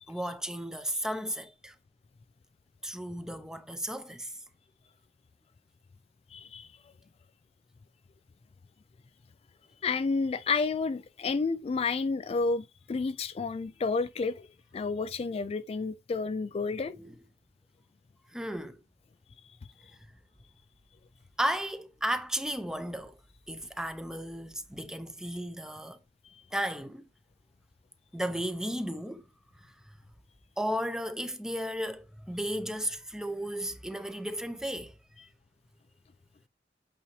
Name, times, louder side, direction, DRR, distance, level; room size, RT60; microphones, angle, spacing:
voice 1, 0.1-1.7 2.8-4.3 16.9-17.1 18.3-18.8 21.4-23.2 23.5-26.0 26.5-27.0 28.1-29.3 29.6-30.0 30.6-34.9, equal, 5° right, 0.6 m, -34 dB
voice 2, 6.3-6.7 9.8-14.5 14.7-17.0, left 4 dB, 35° left, 0.3 m, -30 dB
8.3 x 4.0 x 3.1 m
head